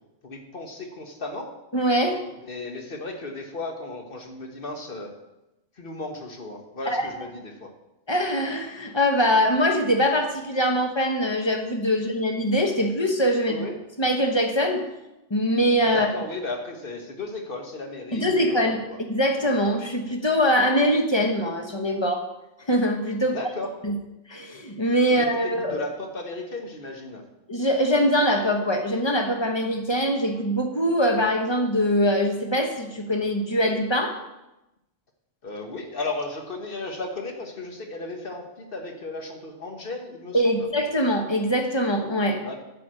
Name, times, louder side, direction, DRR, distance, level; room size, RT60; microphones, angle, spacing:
voice 1, 0.2-1.5 2.4-5.1 5.8-7.7 13.4-13.8 15.8-19.0 23.2-23.7 25.1-27.2 35.4-40.7 42.4-42.6, left 2 dB, 45° left, 3 dB, 1.5 m, -35 dB
voice 2, 1.7-2.2 6.9-7.1 8.1-13.6 14.0-14.9 15.3-16.1 18.1-22.2 22.7-23.4 23.8-24.0 24.3-25.8 27.5-34.1 40.3-42.4, equal, 20° left, 4 dB, 1.1 m, -23 dB
10.5 x 5.0 x 7.7 m, 0.95 s
omnidirectional pair, 1.3 m